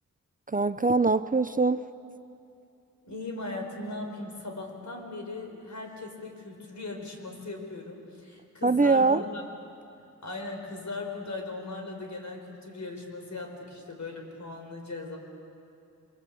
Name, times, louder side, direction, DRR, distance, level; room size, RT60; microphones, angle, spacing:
voice 1, 0.5-1.8 8.6-9.2, right 3 dB, 25° right, 12 dB, 0.6 m, -23 dB
voice 2, 3.0-9.4 10.2-15.2, left 2 dB, 65° left, 3 dB, 5.0 m, -38 dB
29.0 x 24.0 x 8.5 m, 2.6 s
wide cardioid pair, 90°, 31 cm